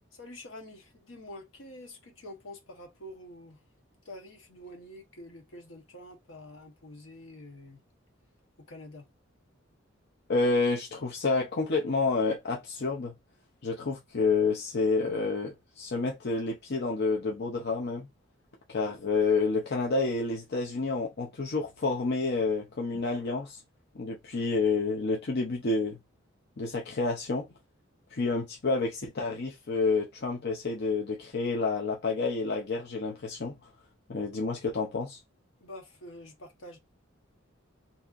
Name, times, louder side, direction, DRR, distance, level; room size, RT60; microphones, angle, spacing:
voice 1, 0.1-3.6 4.0-7.8 8.7-9.1 35.6-36.8, left 1 dB, 70° left, 1.0 m, -47 dB
voice 2, 10.3-13.1 13.6-18.1 18.7-23.6 23.9-26.0 26.6-27.4 28.1-33.5 34.1-35.2, left 3 dB, 55° left, 0.6 m, -29 dB
4.1 x 2.8 x 2.4 m
head